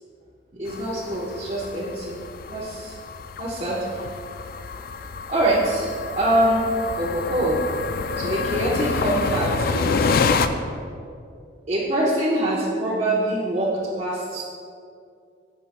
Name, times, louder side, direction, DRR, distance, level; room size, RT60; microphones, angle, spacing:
voice 1, 0.5-2.2 2.5-2.9 3.4-4.1 5.3-6.6 7.0-7.7 8.2-10.4 11.7-14.4, right 1 dB, 35° right, -7 dB, 1.0 m, -24 dB
sound 1, 0.7-10.5, left 5 dB, 50° left, 0.3 m, -28 dB
11.5 x 7.4 x 2.2 m, 2.3 s
head